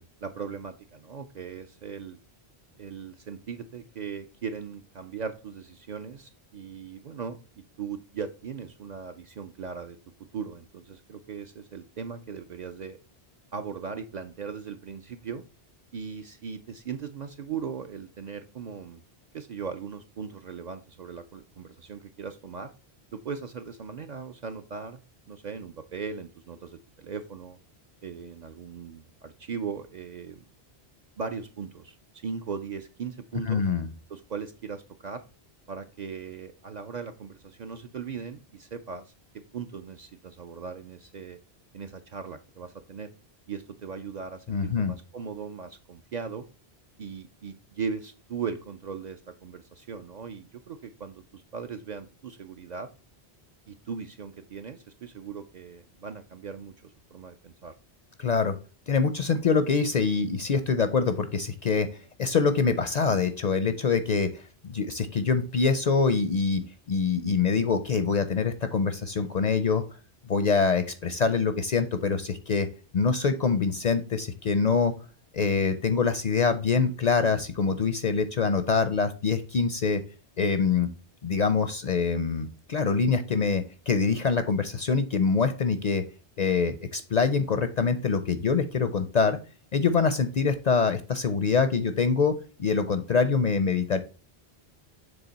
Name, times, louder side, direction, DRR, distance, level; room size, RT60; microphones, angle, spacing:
voice 1, 0.0-2.2 2.8-7.4 7.8-10.0 10.3-13.0 13.5-15.4 15.9-19.0 19.3-22.7 23.1-25.0 25.3-27.6 28.0-30.5 31.2-31.9 32.2-33.6 34.1-35.2 35.7-41.4 41.7-43.1 43.5-46.4 47.0-52.9 53.7-57.7, right 6 dB, 55° right, 8 dB, 0.5 m, -38 dB
voice 2, 33.5-33.9 44.5-44.9 58.2-58.5 58.9-61.9 62.2-69.8 70.3-72.7 72.9-74.9 75.3-80.0 80.4-80.9 81.2-86.0 86.4-89.4 89.7-94.0, left 5 dB, 50° left, 10 dB, 0.5 m, -25 dB
7.0 x 3.6 x 4.0 m, 0.35 s
omnidirectional pair, 1.1 m